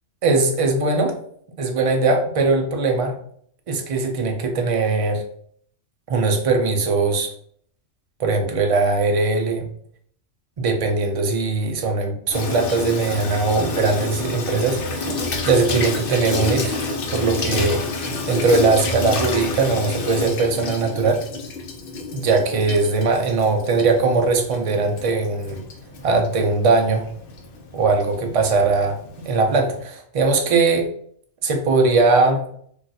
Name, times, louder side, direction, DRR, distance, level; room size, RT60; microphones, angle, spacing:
voice 1, 0.2-1.2 1.6-3.1 3.7-5.2 6.1-7.3 8.2-9.7 10.6-21.2 22.1-25.6 26.0-27.1 27.7-29.0 29.2-30.9 31.4-32.4, right 3 dB, 60° right, 3 dB, 0.3 m, -20 dB
Water tap faucet / Sink (filling or washing), 12.3-29.8, left 3 dB, 60° left, 0.7 m, -29 dB
2.4 x 2.4 x 4.0 m, 0.63 s
omnidirectional pair, 1.2 m